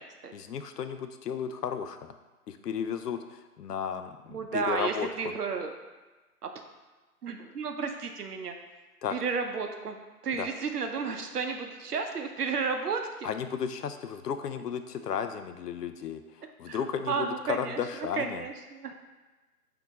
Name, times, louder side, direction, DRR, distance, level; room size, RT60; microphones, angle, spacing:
voice 1, 0.3-2.1 2.5-5.3 9.0-9.2 10.4-10.5 13.2-18.5, left 7 dB, 80° left, 8 dB, 0.6 m, -34 dB
voice 2, 4.3-5.7 6.4-6.5 7.2-8.5 9.1-10.0 10.2-13.3 16.7-16.8 17.1-17.8 18.1-18.9, right 5 dB, 75° right, 5 dB, 0.7 m, -32 dB
4.4 x 2.8 x 4.0 m, 1.2 s
figure-of-eight pair, 150°, 46 cm